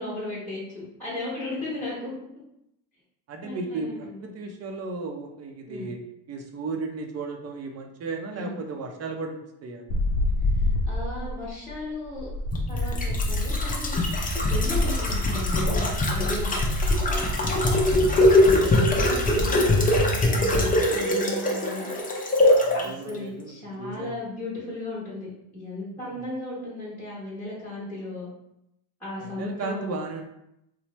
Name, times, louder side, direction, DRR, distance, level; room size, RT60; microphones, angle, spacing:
voice 1, 0.0-2.1 3.4-4.2 5.7-5.9 8.3-8.5 10.9-12.3 12.7-14.0 14.4-16.5 18.1-22.4 22.7-25.3 25.5-28.3 29.0-30.0, left 2 dB, 5° left, -10 dB, 1.2 m, -35 dB
voice 2, 3.3-6.0 6.3-9.8 17.0-17.7 22.6-24.1 26.0-26.2 29.2-30.2, right 3 dB, 35° right, 4 dB, 0.5 m, -35 dB
sound 1, 9.9-18.0, left 2 dB, 65° left, 0.6 m, -28 dB
sound 2, 12.5-22.9 23.1-23.2, left 1 dB, 20° left, 0.5 m, -22 dB
3.0 x 2.0 x 3.0 m, 0.81 s
cardioid pair, 95°, 47 cm